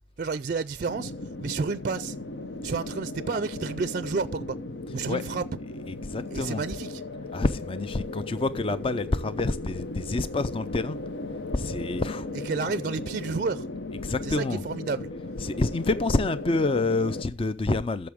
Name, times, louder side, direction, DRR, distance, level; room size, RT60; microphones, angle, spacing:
voice 1, 0.2-1.1 1.4-2.2 2.6-4.6 4.9-5.4 6.3-7.0 12.4-13.7 14.2-15.1, right 4 dB, 50° right, 0.4 m, -30 dB
sound 1, 0.9-17.2, left 2 dB, 80° left, 0.9 m, -37 dB
voice 2, 5.9-6.6 7.3-11.0 11.5-12.3 14.0-14.6 15.4-18.1, left 2 dB, 30° left, 0.4 m, -27 dB
13.5 x 7.0 x 3.5 m
head